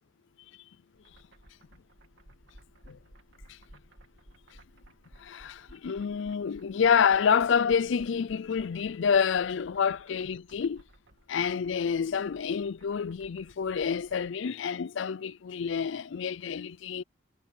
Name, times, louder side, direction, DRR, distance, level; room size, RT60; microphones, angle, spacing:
sound 1, 1.0-14.3, right 1 dB, 60° right, 2.7 m, -57 dB
voice 1, 5.2-10.8 11.3-17.0, left 6 dB, 65° left, 0.4 m, -28 dB
head